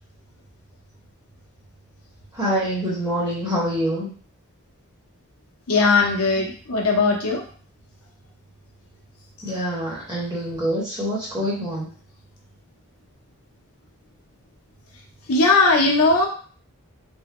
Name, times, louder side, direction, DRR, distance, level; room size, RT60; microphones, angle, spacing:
voice 1, 2.4-4.1 9.4-11.9, equal, 20° right, -7 dB, 1.1 m, -25 dB
voice 2, 5.7-7.4 15.3-16.3, left 3 dB, 80° left, 0 dB, 0.8 m, -18 dB
3.5 x 2.1 x 2.9 m, 0.43 s
head